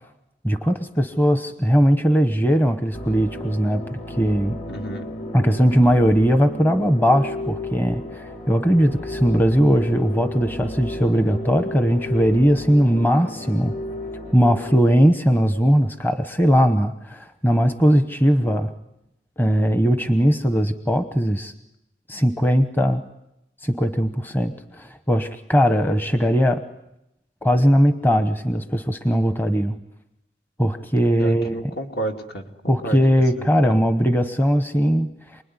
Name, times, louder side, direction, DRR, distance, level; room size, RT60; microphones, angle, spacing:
voice 1, 0.4-4.6 5.3-13.7 14.3-18.7 19.4-21.5 22.1-23.0 23.6-26.6 27.4-29.7 30.6-31.7 32.7-35.4, equal, 10° left, 9 dB, 0.9 m, -19 dB
sound 1, 2.9-14.8, left 1 dB, 40° left, 2.1 m, -33 dB
voice 2, 4.7-5.1 31.2-33.0 33.4-33.8, right 2 dB, 60° left, 3 dB, 2.5 m, -32 dB
28.5 x 20.5 x 9.7 m, 0.89 s
head